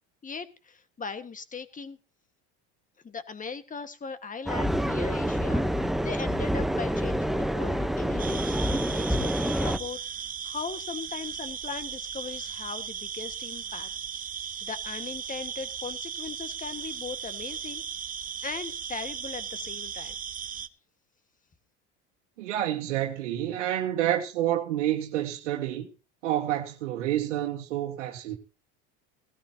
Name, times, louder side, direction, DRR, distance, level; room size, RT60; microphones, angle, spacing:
voice 1, 0.2-2.0 3.0-13.9 14.6-17.8 18.4-20.2, left 5 dB, 20° left, 1.6 m, -39 dB
sound 1, 4.5-9.8, equal, ahead, 0.9 m, -27 dB
sound 2, 8.2-20.7, right 8 dB, 25° right, 0.8 m, -37 dB
voice 2, 22.4-25.9 26.2-28.4, right 12 dB, 90° right, 1.7 m, -28 dB
18.0 x 13.5 x 2.9 m
supercardioid pair, 95°, 35 cm